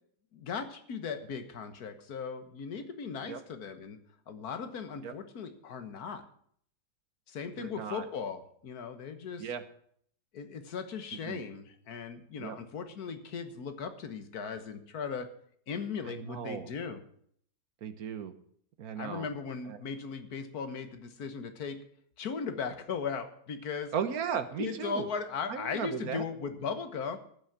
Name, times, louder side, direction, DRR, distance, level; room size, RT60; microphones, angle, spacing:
voice 1, 0.3-4.0 4.3-6.2 7.3-9.5 10.3-15.3 15.7-17.0 19.0-21.8 22.2-23.9 24.6-27.2, left 6 dB, 60° left, 9 dB, 1.7 m, -38 dB
voice 2, 7.6-8.0 9.4-9.6 11.2-11.4 12.4-12.6 16.0-16.7 17.8-18.3 18.8-19.3 19.7-19.8 23.9-25.1 25.5-26.3, right 7 dB, 60° right, 11 dB, 1.3 m, -36 dB
14.5 x 6.3 x 8.7 m, 0.64 s
omnidirectional pair, 1.9 m